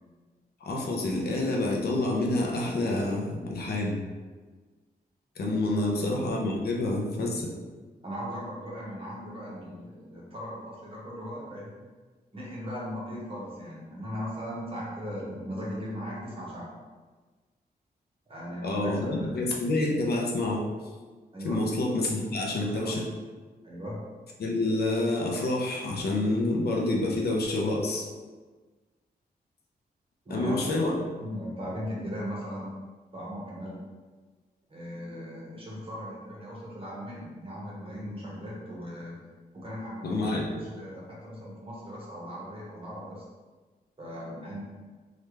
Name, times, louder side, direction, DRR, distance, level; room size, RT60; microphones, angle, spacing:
voice 1, 0.6-4.0 5.4-7.5 18.6-20.7 21.4-23.0 24.4-28.1 30.3-31.0 40.0-40.7, left 2 dB, 75° left, 0 dB, 0.6 m, -28 dB
voice 2, 8.0-11.8 12.3-16.8 18.3-19.4 21.3-21.6 22.6-22.9 23.6-24.1 30.2-30.6 31.2-32.7 33.1-33.8 34.7-39.2 39.5-40.3 40.6-43.2 44.0-44.6, equal, 35° right, -5 dB, 1.1 m, -38 dB
3.3 x 2.3 x 3.1 m, 1.4 s
wide cardioid pair, 100°, 17 cm